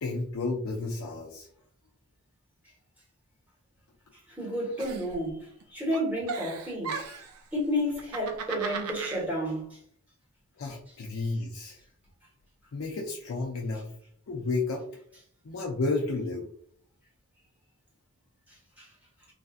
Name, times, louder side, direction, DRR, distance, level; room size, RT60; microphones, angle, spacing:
voice 1, 0.0-1.5 10.6-11.8 12.7-13.9 14.3-14.8 15.4-16.5, left 3 dB, 65° left, 0.5 m, -31 dB
voice 2, 4.4-6.9 7.5-9.7 18.8-18.9, equal, 5° right, 1.2 m, -31 dB
Giggle, 4.8-5.6 5.9-7.4 7.9-9.2, right 5 dB, 85° right, 0.5 m, -36 dB
3.2 x 2.6 x 2.4 m
head